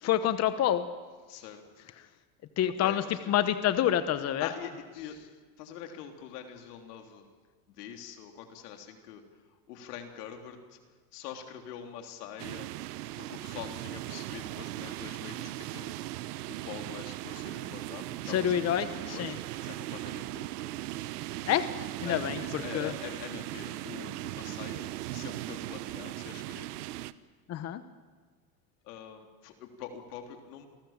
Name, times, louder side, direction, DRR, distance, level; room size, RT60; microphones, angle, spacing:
voice 1, 0.0-0.8 2.6-4.5 18.3-19.3 21.5-21.7 22.0-22.9 27.5-27.8, left 11 dB, 35° left, 11 dB, 1.0 m, -27 dB
voice 2, 1.3-1.9 2.8-3.5 4.4-5.2 5.6-7.2 7.7-9.2 9.7-10.8 11.1-12.7 13.2-15.9 16.5-20.5 22.0-26.9 28.8-30.7, left 8 dB, 85° left, 4 dB, 3.5 m, -44 dB
sound 1, 12.4-27.1, right 16 dB, 90° right, 1.0 m, -38 dB
28.0 x 19.0 x 7.4 m, 1.4 s
supercardioid pair, 135°, 45 cm